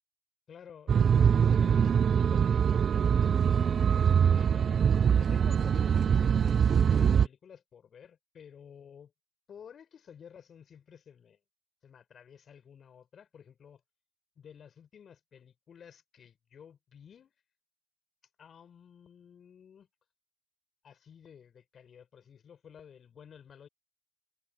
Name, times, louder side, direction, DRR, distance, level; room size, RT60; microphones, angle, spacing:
voice 1, 0.5-2.9 4.3-9.1 9.5-11.4 11.8-13.8 14.4-17.3 18.4-19.9 20.8-23.7, left 8 dB, 50° left, 6.1 m, -52 dB
sound 1, 0.9-7.3, right 7 dB, 45° right, 0.4 m, -23 dB
hypercardioid pair, 60°, 0 cm